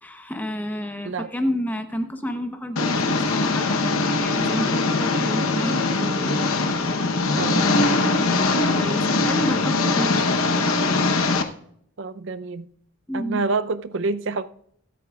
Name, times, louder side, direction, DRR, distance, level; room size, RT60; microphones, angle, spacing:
voice 1, 0.0-6.5 7.3-10.8 13.1-13.5, equal, 10° left, 0.7 m, -30 dB
Engine, 2.8-11.4, left 3 dB, 70° left, 0.9 m, -22 dB
voice 2, 7.3-7.7 12.0-12.7 13.1-14.5, right 3 dB, 55° right, 0.5 m, -27 dB
24.0 x 8.4 x 2.3 m
head